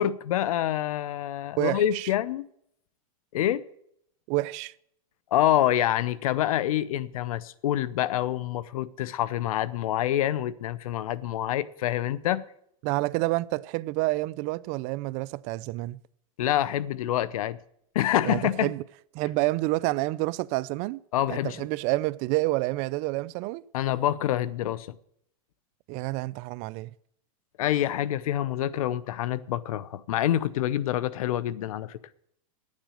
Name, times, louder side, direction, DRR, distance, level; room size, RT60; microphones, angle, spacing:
voice 1, 0.0-2.5 3.3-3.6 5.3-12.4 16.4-17.6 17.9-18.7 21.1-21.7 23.7-24.9 27.6-32.0, left 12 dB, 80° left, 0.7 m, -26 dB
voice 2, 1.6-2.1 4.3-4.7 12.8-16.0 18.2-18.8 19.1-21.0 21.3-23.6 25.9-26.9, right 20 dB, 40° right, 0.4 m, -28 dB
10.0 x 7.4 x 9.0 m
supercardioid pair, 140°, 18 cm